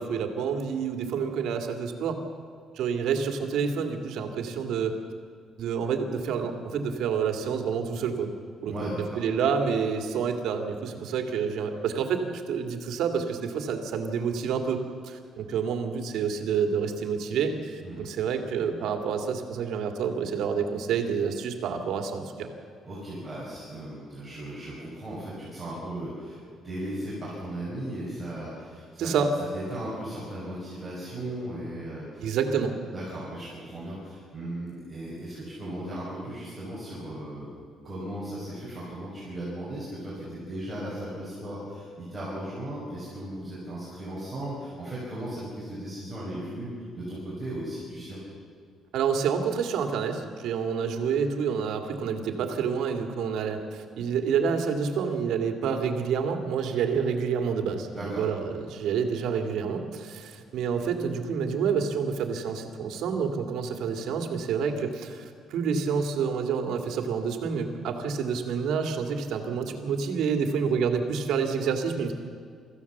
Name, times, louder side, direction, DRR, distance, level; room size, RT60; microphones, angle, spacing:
voice 1, 0.0-2.2 2.7-5.0 5.6-8.3 8.6-22.5 29.0-29.3 32.2-32.8 48.9-72.1, right 6 dB, 70° right, 5 dB, 2.2 m, -28 dB
voice 2, 8.7-9.2 17.8-18.0 22.8-26.4 26.6-29.1 29.5-32.3 32.9-37.5 37.8-46.7 46.9-48.2 57.9-58.2, right 1 dB, 10° right, -9 dB, 5.7 m, -36 dB
25.0 x 14.5 x 7.2 m, 2.2 s
cardioid pair, 175°, 0 cm